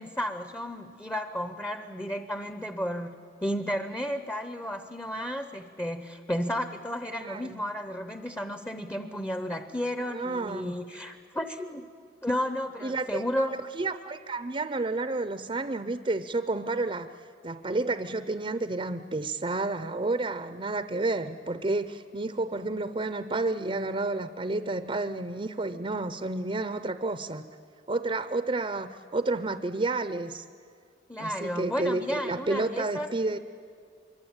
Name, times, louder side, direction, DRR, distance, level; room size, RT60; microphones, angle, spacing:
voice 1, 0.0-3.1 3.4-11.8 12.2-13.5 31.1-33.1, equal, 10° left, 9 dB, 0.8 m, -33 dB
voice 2, 7.2-7.6 10.1-10.7 12.8-13.5 13.7-17.1 17.4-27.4 27.9-30.5 31.2-33.4, right 2 dB, 30° right, 11 dB, 0.7 m, -30 dB
24.5 x 23.5 x 8.9 m, 2.2 s
head